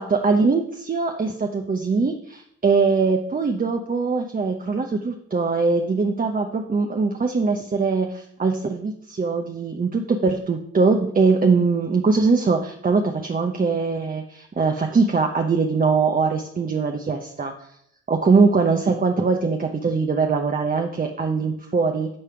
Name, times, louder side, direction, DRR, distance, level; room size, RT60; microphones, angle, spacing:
voice 1, 0.0-17.5 18.1-22.1, right 4 dB, 30° right, 3 dB, 0.9 m, -22 dB
8.5 x 3.4 x 5.7 m, 0.70 s
hypercardioid pair, 40°, 30 cm